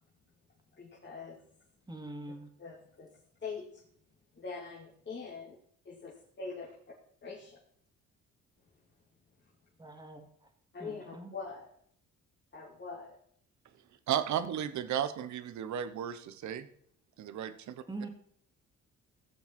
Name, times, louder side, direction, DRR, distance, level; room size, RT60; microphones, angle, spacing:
voice 1, 0.8-1.4 2.6-3.1 3.4-3.8 4.4-5.6 5.9-6.7 7.2-7.6 10.7-11.7 12.5-13.2, left 4 dB, 35° left, -4 dB, 2.2 m, -43 dB
voice 2, 1.9-2.5 9.8-10.3 10.8-11.3 17.9-18.1, right 2 dB, 15° right, 4 dB, 2.3 m, -43 dB
voice 3, 14.1-16.7 17.2-17.8, right 9 dB, 70° right, 13 dB, 1.0 m, -34 dB
16.5 x 7.1 x 4.3 m, 0.66 s
cardioid pair, 90°, 30 cm